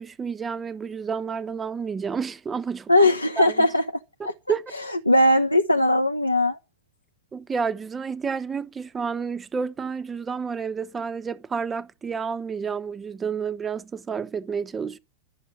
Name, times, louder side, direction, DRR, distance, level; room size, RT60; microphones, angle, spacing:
voice 1, 0.0-2.9 3.4-3.7 4.5-4.7 7.3-15.0, right 6 dB, 20° right, 1.1 m, -30 dB
voice 2, 2.9-3.8 4.2-4.3 5.1-6.6, left 1 dB, 85° left, 0.9 m, -19 dB
12.0 x 7.7 x 9.3 m
figure-of-eight pair, 90°, 0 cm